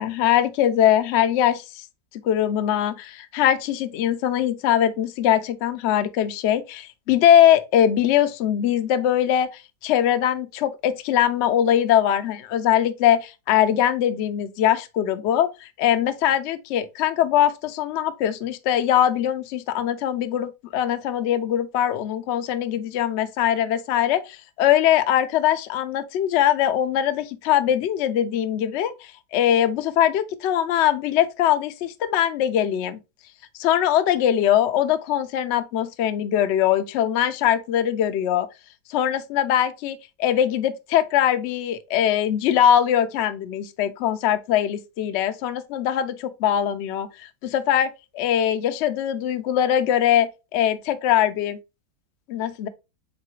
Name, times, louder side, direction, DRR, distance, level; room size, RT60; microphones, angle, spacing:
voice 1, 0.0-1.8 2.2-33.0 33.6-38.5 38.9-47.9 48.2-51.6 52.3-52.7, left 10 dB, 85° left, 0.6 m, -21 dB
4.0 x 3.7 x 3.0 m
omnidirectional pair, 1.7 m